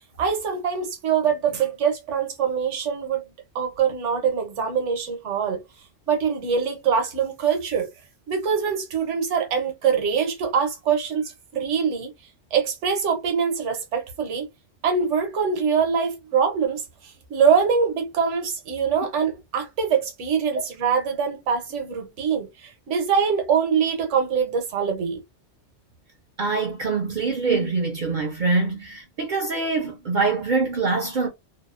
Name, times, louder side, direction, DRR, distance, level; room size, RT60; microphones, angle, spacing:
voice 1, 0.2-5.6 6.1-7.9 8.3-12.1 12.5-14.5 14.8-25.2, right 6 dB, 80° right, 1.1 m, -24 dB
voice 2, 26.4-31.3, right 4 dB, 60° right, 0.5 m, -24 dB
2.7 x 2.0 x 2.3 m
omnidirectional pair, 1.2 m